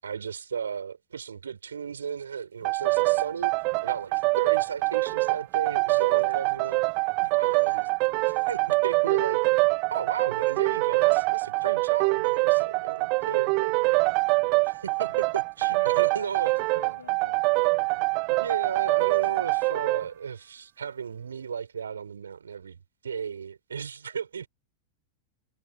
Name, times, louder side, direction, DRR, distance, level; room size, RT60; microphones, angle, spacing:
voice 1, 0.0-3.5 3.8-6.8 7.3-7.9 8.2-9.4 9.9-13.8 14.6-16.5 18.3-24.5, right 7 dB, 70° right, 7.0 m, -35 dB
sound 1, 2.6-20.1, right 31 dB, 45° right, 0.4 m, -24 dB
voice 2, 15.7-16.3 16.6-18.3, left 5 dB, 75° left, 7.7 m, -47 dB
figure-of-eight pair, 90°, 0 cm